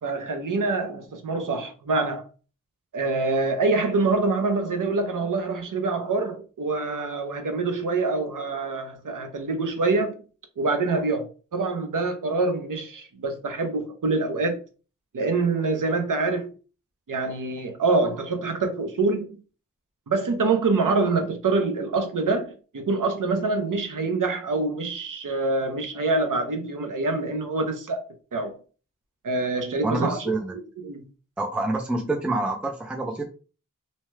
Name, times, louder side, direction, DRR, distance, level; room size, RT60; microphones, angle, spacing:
voice 1, 0.0-2.2 2.9-10.2 10.6-14.6 15.1-16.5 17.1-19.3 20.1-28.0 28.3-28.6 29.2-30.3 30.8-31.1, right 3 dB, 80° right, 0.7 m, -25 dB
voice 2, 29.8-30.5 31.4-33.3, right 2 dB, 5° right, 0.4 m, -27 dB
2.8 x 2.2 x 3.1 m
wide cardioid pair, 70°, 32 cm